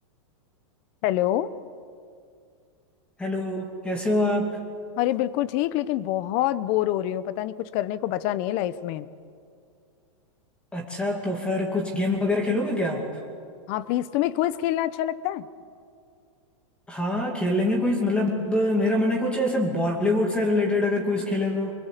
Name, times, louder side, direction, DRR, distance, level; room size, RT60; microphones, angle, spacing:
voice 1, 1.0-1.5 5.0-9.1 13.7-15.5, left 13 dB, 35° left, 16 dB, 0.9 m, -26 dB
voice 2, 3.2-4.6 10.7-13.2 16.9-21.7, left 1 dB, 5° left, 1 dB, 2.5 m, -25 dB
24.5 x 24.5 x 8.3 m, 2.2 s
supercardioid pair, 165°, 17 cm